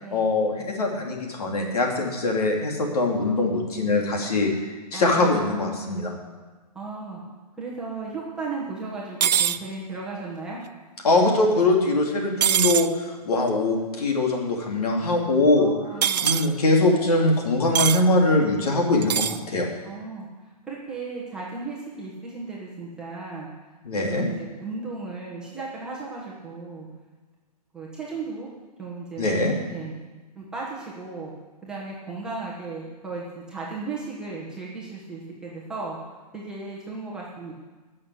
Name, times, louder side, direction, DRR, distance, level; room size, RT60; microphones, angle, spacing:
voice 1, 0.1-4.7 4.9-6.1 11.0-15.7 16.2-19.7 23.8-24.3 29.2-29.5, left 2 dB, 65° left, 0 dB, 3.2 m, -22 dB
voice 2, 4.9-5.6 5.8-6.0 6.7-7.2 7.6-10.6 15.5-16.4 19.8-23.5 23.9-26.9 27.7-28.5 28.8-29.3 29.7-29.9 30.3-31.3 31.6-36.0 36.3-37.5, right 3 dB, 5° right, -6 dB, 1.3 m, -35 dB
sound 1, 9.2-9.6 12.4-12.9 16.0-16.5 17.8-18.0 19.0-19.4, right 9 dB, 90° right, 0.6 m, -22 dB
12.5 x 6.6 x 8.5 m, 1.3 s
hypercardioid pair, 175°, 21 cm